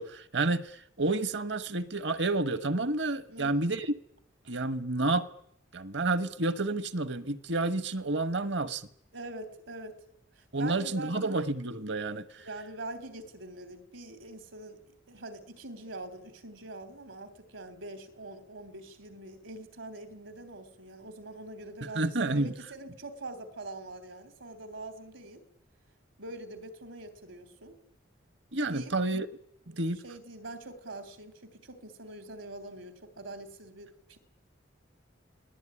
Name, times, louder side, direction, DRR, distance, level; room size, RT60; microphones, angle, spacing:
voice 1, 0.0-3.9 4.5-5.2 5.7-8.9 10.5-12.5 21.9-22.5 28.5-29.3 29.7-30.0, right 2 dB, 65° right, 1.3 m, -30 dB
voice 2, 3.3-3.7 9.1-10.0 10.4-11.4 12.4-14.8 15.1-25.4 26.2-27.8 28.6-28.9 29.7-29.8 30.0-34.2, right 2 dB, 80° right, 3.5 m, -44 dB
28.0 x 18.5 x 9.9 m
head